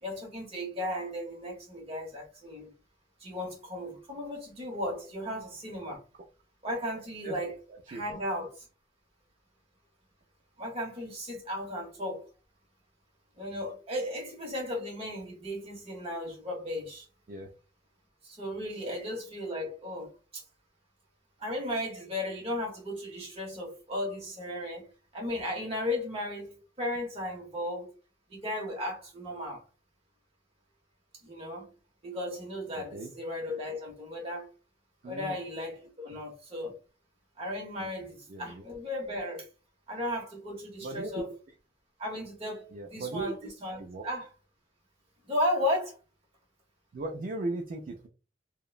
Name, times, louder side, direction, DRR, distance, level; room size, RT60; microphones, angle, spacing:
voice 1, 0.0-2.7 3.2-6.0 6.6-7.6 7.9-8.7 10.6-12.3 13.4-17.1 18.2-20.4 21.4-24.9 25.1-27.9 28.3-29.6 31.2-31.7 32.0-34.5 35.0-36.8 37.4-39.5 39.9-41.3 42.0-44.3 45.2-46.0, left 1 dB, 35° right, 1.0 m, -35 dB
voice 2, 32.8-33.1 35.0-35.4 37.8-37.9 38.3-38.6 40.8-41.2 42.7-43.3 43.8-44.0 46.9-48.1, right 2 dB, 50° right, 0.4 m, -37 dB
2.8 x 2.1 x 2.4 m
head